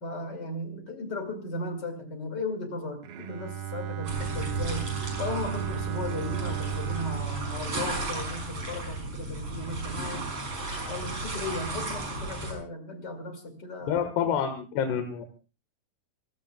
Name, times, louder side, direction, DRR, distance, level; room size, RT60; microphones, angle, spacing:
voice 1, 0.0-4.9 5.2-10.3 10.9-14.0, left 2 dB, 30° left, 7 dB, 2.4 m, -36 dB
Bowed string instrument, 3.0-9.0, right 11 dB, 75° right, 3.2 m, -35 dB
sound 1, 4.0-12.5, right 2 dB, 35° right, 7.0 m, -34 dB
voice 2, 13.9-15.3, left 8 dB, 80° left, 7 dB, 3.5 m, -28 dB
28.5 x 16.0 x 2.3 m, 0.34 s
omnidirectional pair, 4.7 m